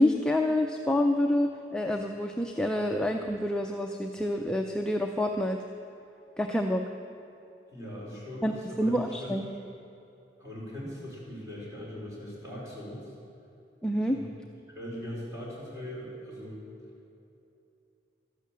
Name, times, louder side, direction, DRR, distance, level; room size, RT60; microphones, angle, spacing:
voice 1, 0.0-5.6 6.4-6.8 8.4-9.5 13.8-14.2, left 1 dB, 5° left, 2 dB, 0.5 m, -27 dB
voice 2, 7.7-9.6 10.4-13.1 14.1-14.3 14.7-16.7, equal, 20° right, -6 dB, 4.3 m, -40 dB
13.0 x 11.5 x 7.4 m, 2.8 s
head